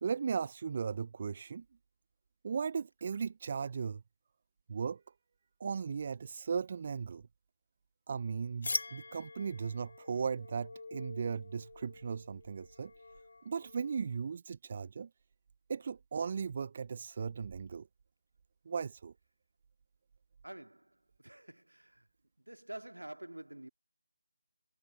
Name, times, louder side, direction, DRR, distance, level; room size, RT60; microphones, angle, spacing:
voice 1, 0.0-1.6 2.4-4.0 4.7-5.0 5.6-7.2 8.1-12.9 13.4-15.1 15.7-17.9 18.7-19.1, right 6 dB, 35° right, 0.3 m, -37 dB
sound 1, 8.6-14.2, left 3 dB, 55° left, 0.4 m, -44 dB
voice 2, 20.4-22.1 22.4-23.7, right 1 dB, 85° right, 2.3 m, -48 dB
figure-of-eight pair, 160°, 0 cm